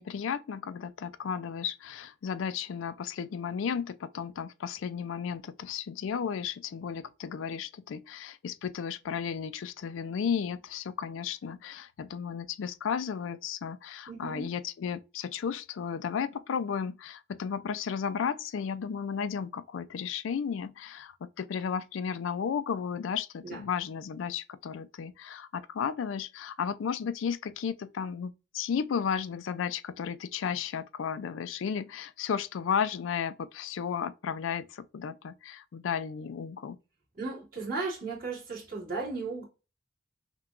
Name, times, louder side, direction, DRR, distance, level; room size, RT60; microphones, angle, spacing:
voice 1, 0.0-36.8, left 7 dB, 85° left, 0.4 m, -34 dB
voice 2, 14.1-14.5 23.4-23.7 37.1-39.4, right 3 dB, 45° right, 2.0 m, -35 dB
5.8 x 2.2 x 2.4 m
head